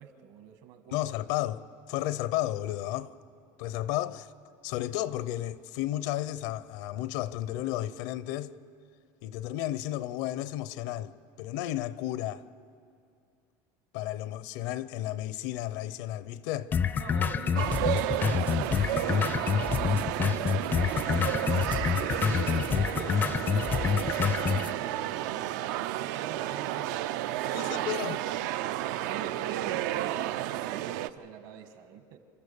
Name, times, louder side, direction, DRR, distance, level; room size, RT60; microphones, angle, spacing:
voice 1, 0.0-1.1 17.0-25.6 26.0-28.3 28.8-32.2, right 7 dB, 60° right, 1.5 m, -45 dB
voice 2, 0.9-1.6 1.9-3.1 3.6-4.3 4.6-8.5 9.2-12.4 13.9-16.7 27.5-28.2, left 14 dB, 65° left, 0.6 m, -33 dB
sound 1, 16.7-24.7, left 7 dB, 20° left, 0.4 m, -27 dB
sound 2, 17.6-31.1, right 14 dB, 80° right, 0.5 m, -32 dB
29.0 x 13.5 x 6.9 m
cardioid pair, 170°, 10 cm